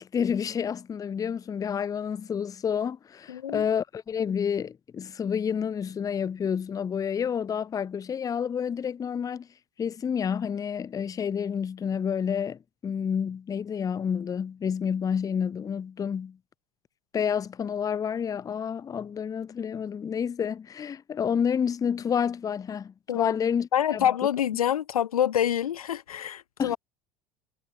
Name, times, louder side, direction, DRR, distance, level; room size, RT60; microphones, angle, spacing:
voice 1, 0.0-9.5 9.8-16.4 17.1-24.0 26.6-26.8, left 7 dB, 20° left, 0.4 m, -29 dB
voice 2, 3.3-3.6 23.1-23.3 23.7-26.8, left 10 dB, 80° left, 0.5 m, -26 dB
figure-of-eight pair, 65°, 19 cm